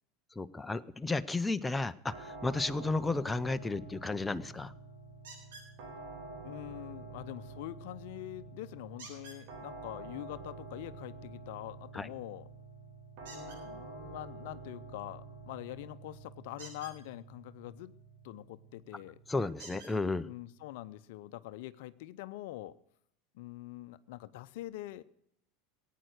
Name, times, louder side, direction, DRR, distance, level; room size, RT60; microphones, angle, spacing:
voice 1, 0.4-4.7 11.9-12.1 19.3-20.3, left 3 dB, 10° left, 12 dB, 0.6 m, -33 dB
sound 1, 2.1-21.0, right 3 dB, 60° right, 3.1 m, -49 dB
sound 2, 5.2-5.7 9.0-9.4 13.2-13.6 16.5-17.0 18.6-18.7 19.6-19.9 20.9-21.0 21.5-21.6, right 3 dB, 80° right, 7.2 m, -49 dB
voice 2, 6.4-12.5 13.3-18.0 18.2-19.2 20.1-22.7 23.3-25.0, left 15 dB, 70° left, 14 dB, 0.6 m, -44 dB
16.5 x 9.2 x 6.4 m, 0.73 s
hypercardioid pair, 95°, 0 cm